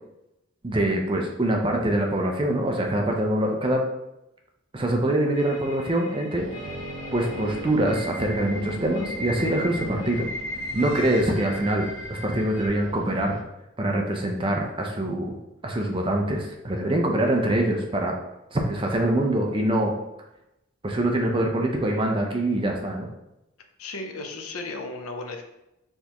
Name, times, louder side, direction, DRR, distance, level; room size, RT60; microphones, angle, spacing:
voice 1, 0.6-3.8 4.7-6.6 7.1-10.3 10.7-13.4 13.8-15.4 15.6-18.1 18.5-19.9 20.8-23.1, right 1 dB, 25° right, 1 dB, 0.5 m, -24 dB
sound 1, 5.3-12.7, left 1 dB, 55° left, 0.8 m, -37 dB
sound 2, 6.4-13.4, right 1 dB, 70° right, 0.6 m, -38 dB
voice 2, 23.8-25.4, left 2 dB, 80° left, 4 dB, 0.6 m, -35 dB
4.3 x 3.4 x 2.9 m, 0.90 s
head